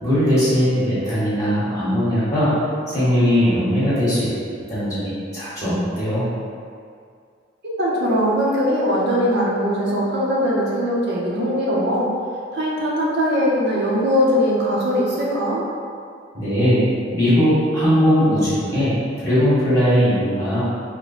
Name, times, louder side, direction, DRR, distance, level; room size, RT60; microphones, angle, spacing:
voice 1, 0.0-2.5 2.9-4.3 4.7-6.2 16.3-16.8 17.1-20.6, equal, 20° left, -12 dB, 1.0 m, -19 dB
voice 2, 7.8-12.1 12.5-15.6, equal, 60° right, -5 dB, 0.7 m, -20 dB
3.0 x 2.2 x 4.0 m, 2.3 s
head